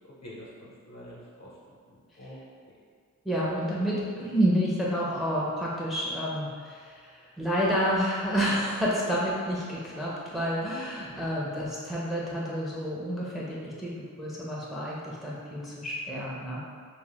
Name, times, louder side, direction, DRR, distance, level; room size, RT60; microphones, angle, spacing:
voice 1, 0.0-1.5 1.9-2.4 2.7-2.8 11.5-11.6, equal, 55° left, -6 dB, 0.9 m, -46 dB
voice 2, 3.2-16.6, equal, ahead, -6 dB, 0.6 m, -29 dB
2.4 x 2.1 x 3.4 m, 2.1 s
cardioid pair, 55°, 33 cm